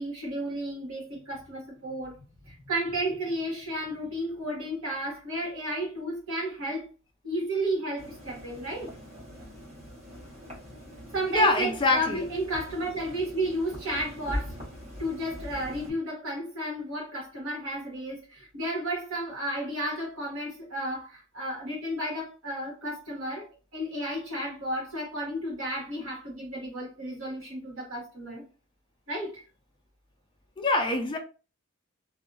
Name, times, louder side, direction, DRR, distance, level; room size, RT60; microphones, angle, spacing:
voice 1, 0.0-2.2 2.5-6.8 7.2-8.9 11.1-14.6 15.0-23.4 23.7-28.4 29.1-29.4, right 1 dB, 85° right, 1.5 m, -32 dB
sound 1, 8.0-15.9, equal, 35° right, 1.4 m, -42 dB
voice 2, 11.3-12.2 30.6-31.2, left 2 dB, 25° left, 0.4 m, -24 dB
2.7 x 2.4 x 2.5 m
head